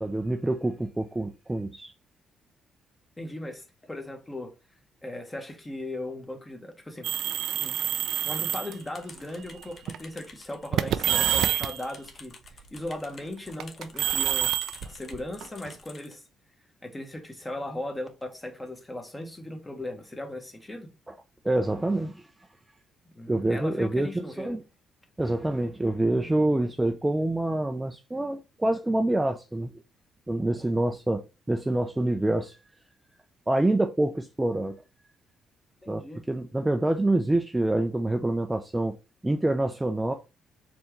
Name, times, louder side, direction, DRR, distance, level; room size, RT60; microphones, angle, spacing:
voice 1, 0.0-1.9 21.4-22.2 23.3-24.6 25.2-29.7 30.3-32.5 33.5-34.8 35.9-39.0 39.2-40.1, right 1 dB, 10° right, 0.5 m, -26 dB
voice 2, 3.2-4.5 5.0-7.3 7.6-7.7 8.2-14.5 14.8-16.2 16.8-20.9 23.1-24.6 35.8-36.2, left 1 dB, 15° left, 1.3 m, -38 dB
sound 1, 7.0-8.7 9.6-10.0 10.7-11.8 13.6-15.7, right 11 dB, 75° right, 0.3 m, -27 dB
sound 2, 8.8-16.1, left 4 dB, 45° left, 1.0 m, -50 dB
4.4 x 3.4 x 3.1 m
cardioid pair, 90°, 0 cm